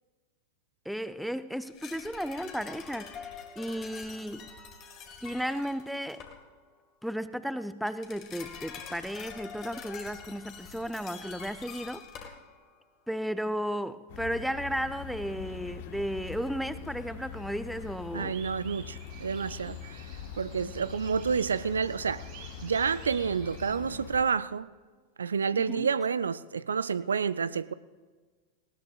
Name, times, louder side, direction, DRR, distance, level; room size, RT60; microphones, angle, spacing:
voice 1, 0.9-3.3 3.6-4.5 5.2-6.3 7.0-12.0 13.1-18.4 25.7-25.9, equal, ahead, 0.5 m, -34 dB
sound 1, 1.6-6.5 7.9-12.8 13.1-13.2, left 7 dB, 35° left, 1.6 m, -46 dB
sound 2, 14.1-24.3, left 8 dB, 50° left, 0.9 m, -43 dB
voice 2, 18.1-20.1 20.4-22.3 22.6-24.7 25.2-27.7, right 6 dB, 70° right, 0.3 m, -29 dB
sound 3, 18.2-23.8, right 7 dB, 45° right, 2.0 m, -51 dB
19.5 x 18.5 x 2.4 m
figure-of-eight pair, 90°, 0 cm